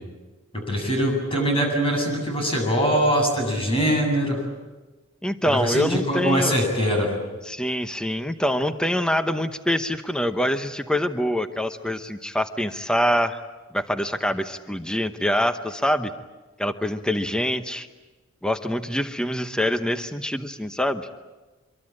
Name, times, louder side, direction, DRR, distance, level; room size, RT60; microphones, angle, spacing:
voice 1, 0.5-4.4 5.4-7.1, equal, 25° left, 2 dB, 7.8 m, -22 dB
voice 2, 5.2-6.5 7.5-13.4 13.7-16.1 16.6-17.9 18.4-21.1, equal, 5° left, 9 dB, 0.9 m, -25 dB
25.0 x 23.0 x 8.8 m, 1.2 s
head